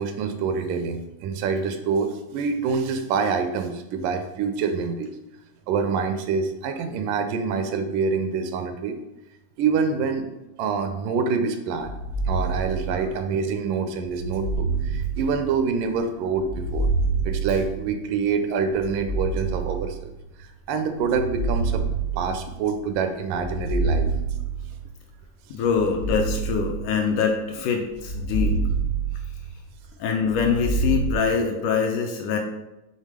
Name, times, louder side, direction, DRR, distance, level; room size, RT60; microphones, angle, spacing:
voice 1, 0.0-5.2 5.7-9.0 9.6-10.3 10.6-11.9 12.3-16.9 17.2-20.1 20.4-21.8 22.1-24.1, right 5 dB, 80° right, 7 dB, 2.1 m, -26 dB
sound 1, 11.8-13.3 14.1-15.8 16.4-18.2 18.8-20.3 21.0-22.8 23.3-25.0 25.7-27.4 27.9-29.7 30.3-31.1, right 4 dB, 60° left, 0.9 m, -27 dB
voice 2, 25.5-28.6 30.0-32.4, left 6 dB, 75° left, 3 dB, 2.0 m, -24 dB
7.4 x 3.6 x 4.9 m, 0.94 s
omnidirectional pair, 3.9 m